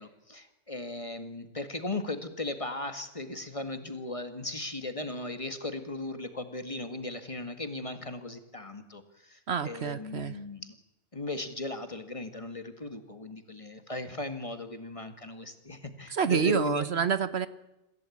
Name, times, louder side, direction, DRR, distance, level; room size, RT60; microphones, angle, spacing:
voice 1, 0.0-10.7 11.1-16.9, left 2 dB, 25° left, 8 dB, 1.9 m, -37 dB
voice 2, 9.5-10.4 16.1-17.5, right 7 dB, 65° right, 14 dB, 1.2 m, -28 dB
26.0 x 15.5 x 8.5 m, 0.94 s
omnidirectional pair, 1.2 m